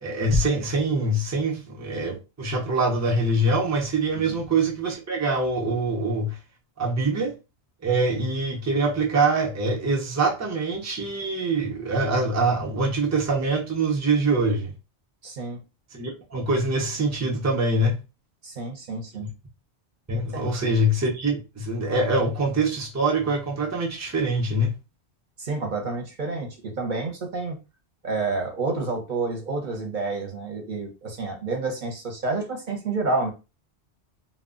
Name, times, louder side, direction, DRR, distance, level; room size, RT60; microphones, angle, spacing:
voice 1, 0.0-6.4 6.8-7.3 7.8-14.7 15.9-18.0 19.1-19.3 20.1-24.7, right 2 dB, 20° right, 0.4 m, -24 dB
voice 2, 15.2-15.6 18.4-19.3 20.3-20.4 25.4-27.6 28.0-33.3, right 3 dB, 50° right, 0.8 m, -29 dB
2.3 x 2.1 x 3.6 m
omnidirectional pair, 1.2 m